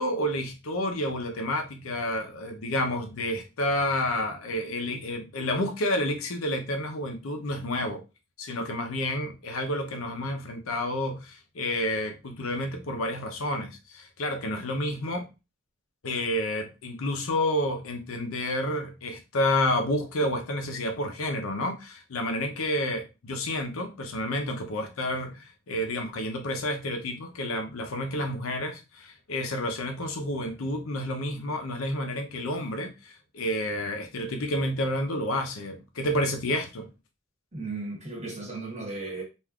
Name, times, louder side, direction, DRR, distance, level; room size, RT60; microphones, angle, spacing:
voice 1, 0.0-8.0 8.4-15.3 16.0-36.9, left 1 dB, 90° left, 0.6 m, -30 dB
voice 2, 37.5-39.2, right 3 dB, 35° right, 0.9 m, -35 dB
3.4 x 2.5 x 2.3 m
head